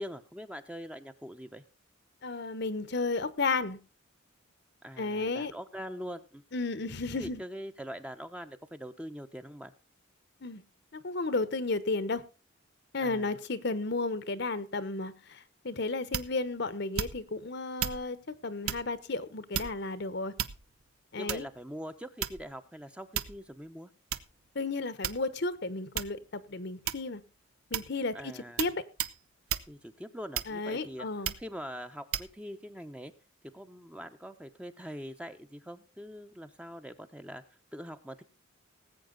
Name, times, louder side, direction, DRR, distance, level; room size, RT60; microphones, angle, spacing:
voice 1, 0.0-1.6 4.8-6.4 7.1-9.7 13.0-13.3 21.2-23.9 28.1-28.7 29.7-31.1 31.4-33.1 33.5-37.4 37.7-38.2, equal, 5° right, 0.8 m, -43 dB
voice 2, 2.2-3.8 5.0-5.5 6.5-7.4 10.4-10.6 10.9-12.2 12.9-20.3 21.1-21.5 24.5-27.2 27.7-28.3 28.6-28.8 30.5-31.3, left 3 dB, 50° left, 0.9 m, -33 dB
sound 1, 16.1-16.5 16.9-17.4 17.8-18.0 18.6-18.9 19.5-19.9 20.4-20.8 21.3-21.6 22.2-22.6 23.1-23.5 24.1-24.3 25.0-25.5 25.9-26.2 26.8-27.2 27.7-28.0 28.6-28.7 29.0-29.2 29.5-29.7 30.3-30.7 31.2-31.5 32.1-32.3, right 9 dB, 90° right, 0.9 m, -34 dB
19.0 x 8.4 x 3.9 m
head